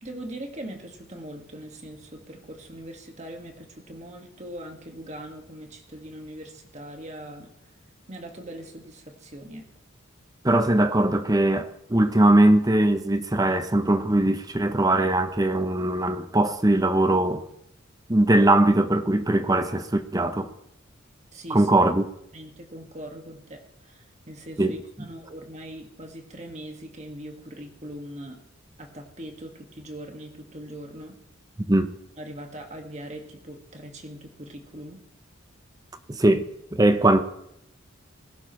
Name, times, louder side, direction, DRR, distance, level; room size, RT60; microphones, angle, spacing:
voice 1, 0.0-7.5 8.1-9.6 21.3-21.7 22.3-28.4 28.8-31.2 32.2-35.0, right 1 dB, 35° right, 1.8 m, -41 dB
voice 2, 10.4-17.4 18.1-20.5 21.5-22.1 24.6-24.8 31.7-31.9 36.1-37.2, right 1 dB, 20° right, 0.7 m, -21 dB
20.5 x 11.5 x 3.2 m
head